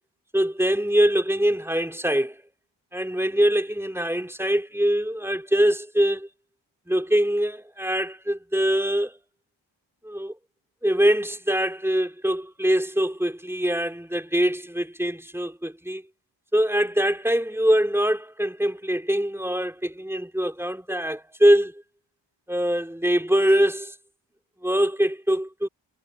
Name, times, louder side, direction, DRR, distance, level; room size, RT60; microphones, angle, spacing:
voice 1, 0.3-2.4 2.9-6.3 6.9-9.2 10.0-10.3 10.8-16.0 16.5-21.8 22.5-23.9 24.6-25.7, equal, 5° right, 3.7 m, -23 dB
wide cardioid pair, 90°, 46 cm